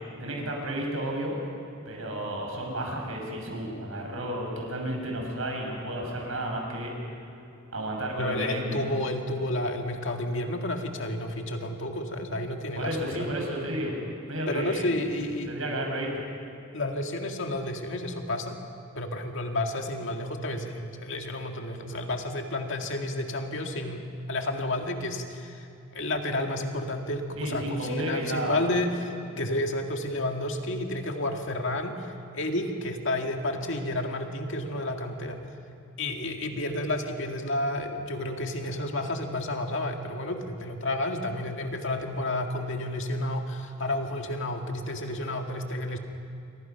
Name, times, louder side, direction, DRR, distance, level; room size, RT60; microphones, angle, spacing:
voice 1, 0.2-1.4 1.8-6.9 7.7-8.8 12.7-14.0 14.3-14.9 15.5-16.2 27.4-28.6, right 1 dB, 80° right, 1 dB, 6.3 m, -32 dB
voice 2, 8.1-13.3 14.5-15.5 16.7-18.6 19.0-25.7 25.9-35.4 36.0-46.0, left 1 dB, 65° left, 3 dB, 2.1 m, -31 dB
29.0 x 24.5 x 5.9 m, 2.6 s
head